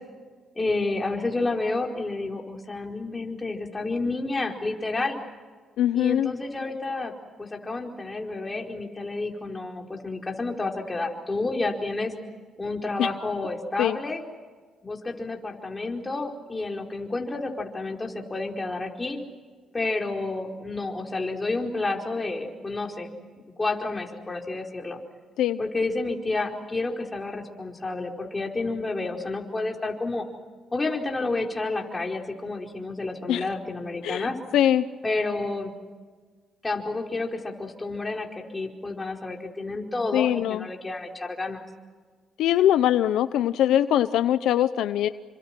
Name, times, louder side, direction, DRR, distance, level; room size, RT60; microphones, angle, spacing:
voice 1, 0.5-5.2 5.9-7.1 7.4-12.1 12.6-14.2 14.8-19.2 19.7-23.1 23.6-25.0 25.6-30.3 30.7-34.4 35.0-35.7 36.6-41.6, left 3 dB, 20° left, 1 dB, 4.8 m, -30 dB
voice 2, 5.8-6.3 13.0-13.1 13.8-14.0 25.4-25.6 33.3-33.4 34.0-34.3 34.5-34.9 40.1-40.7 42.4-45.1, left 11 dB, 85° left, 12 dB, 0.8 m, -22 dB
29.0 x 25.5 x 6.1 m, 1.5 s
cardioid pair, 90°, 0 cm